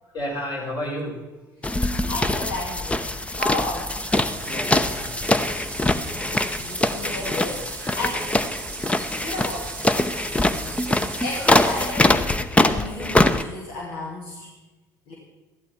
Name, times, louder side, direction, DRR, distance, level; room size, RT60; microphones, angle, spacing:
voice 1, 0.1-1.1 4.0-5.2 6.7-7.6 13.6-13.7, equal, 45° left, -2 dB, 5.1 m, -34 dB
sound 1, 1.6-13.4, left 2 dB, 10° left, 0.8 m, -23 dB
voice 2, 2.1-4.0 6.2-8.6 9.2-9.7 11.2-12.3 12.6-14.5 15.1-15.2, left 2 dB, 70° left, -3 dB, 2.2 m, -33 dB
sound 2, 3.6-11.9, right 11 dB, 75° right, 0.9 m, -40 dB
14.0 x 11.5 x 4.3 m, 1.1 s
hypercardioid pair, 60°, 10 cm